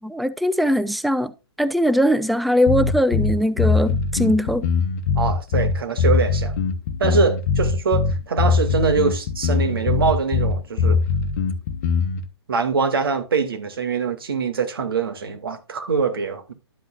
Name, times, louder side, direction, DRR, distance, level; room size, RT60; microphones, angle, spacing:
voice 1, 0.0-1.3 1.6-4.7, equal, ahead, 0.3 m, -20 dB
sound 1, 2.7-12.2, left 5 dB, 40° left, 1.2 m, -21 dB
voice 2, 5.2-6.5 7.0-11.0 12.5-16.5, right 5 dB, 60° right, 2.1 m, -23 dB
12.0 x 8.1 x 2.4 m
figure-of-eight pair, 125°, 14 cm